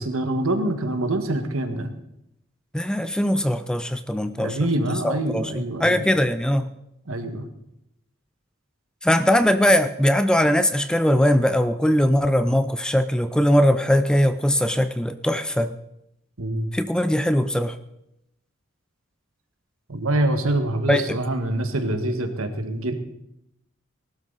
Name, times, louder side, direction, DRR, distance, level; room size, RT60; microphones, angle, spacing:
voice 1, 0.0-1.9 4.4-6.0 7.1-7.5 16.4-16.7 19.9-22.9, right 1 dB, 85° right, 7 dB, 1.6 m, -25 dB
voice 2, 2.7-4.6 5.0-5.5 5.8-6.7 9.0-15.7 16.7-17.8 20.9-21.2, equal, 5° left, 11 dB, 0.4 m, -20 dB
19.0 x 12.5 x 4.1 m, 0.82 s
head